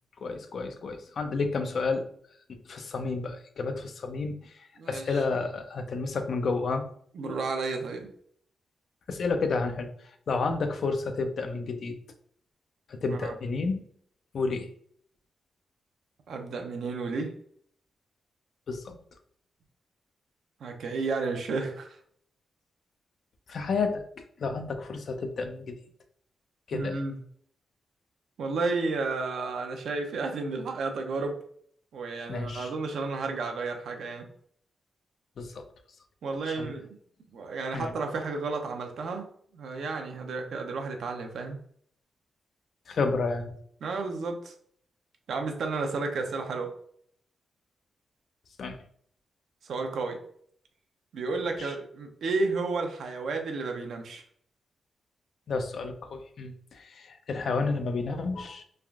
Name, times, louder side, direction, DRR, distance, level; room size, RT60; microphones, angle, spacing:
voice 1, 0.2-2.0 2.7-6.9 7.3-7.4 9.1-9.9 10.3-11.9 12.9-13.9 14.3-14.7 18.7-19.0 23.5-24.0 24.4-25.8 26.7-27.0 32.3-32.7 35.4-35.6 36.5-36.7 37.7-37.9 42.9-43.6 48.6-48.8 51.6-51.7 55.5-58.6, left 4 dB, 70° left, 6 dB, 0.4 m, -31 dB
voice 2, 4.8-5.2 7.1-8.1 13.1-13.3 16.3-17.3 20.6-22.0 26.7-27.2 28.4-31.4 31.9-34.3 36.2-36.9 37.3-39.3 39.5-41.6 43.8-44.5 45.3-46.7 49.6-50.2 51.1-54.2, right 3 dB, 80° right, 4 dB, 0.5 m, -32 dB
3.2 x 2.4 x 2.3 m, 0.63 s
cardioid pair, 60°, 0 cm